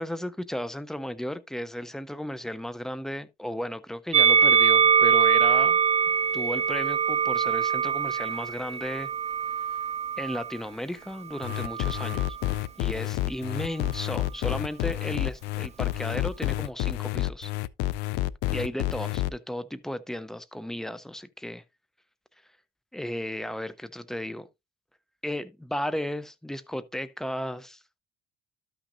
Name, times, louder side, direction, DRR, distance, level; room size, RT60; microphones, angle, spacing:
voice 1, 0.0-5.8 6.3-9.1 10.2-12.2 12.8-17.5 18.5-21.6 22.9-24.5 25.2-27.8, equal, 5° left, 0.7 m, -34 dB
Musical instrument, 4.1-10.5 11.4-12.4, right 7 dB, 40° right, 0.6 m, -23 dB
sound 1, 11.4-19.3, left 17 dB, 85° left, 0.4 m, -29 dB
12.5 x 6.1 x 2.5 m
cardioid pair, 115°, 17 cm